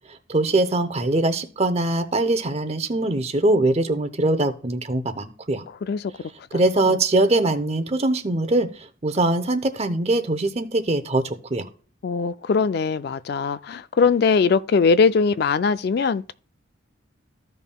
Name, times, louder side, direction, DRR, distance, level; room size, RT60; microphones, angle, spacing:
voice 1, 0.1-5.6 6.5-11.7, right 2 dB, 30° right, 0.7 m, -22 dB
voice 2, 12.0-16.3, left 5 dB, 50° left, 0.3 m, -21 dB
14.5 x 5.4 x 2.2 m
head